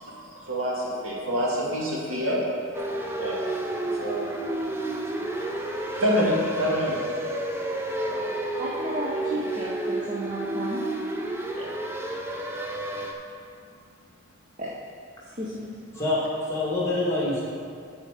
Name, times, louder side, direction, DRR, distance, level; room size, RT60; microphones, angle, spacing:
voice 1, 0.5-2.4 3.2-3.4 3.7-4.2 6.0-7.0 7.9-8.3 11.5-11.7, equal, 80° right, -5 dB, 2.1 m, -26 dB
sound 1, 2.7-13.1, right 1 dB, 10° right, 0.5 m, -31 dB
voice 2, 5.4-5.8 8.6-10.8 14.6-14.7 15.3-15.7, right 1 dB, 35° right, -4 dB, 0.8 m, -33 dB
voice 3, 15.9-17.4, left 2 dB, 15° left, -6 dB, 1.8 m, -26 dB
11.0 x 4.8 x 5.0 m, 2.3 s
head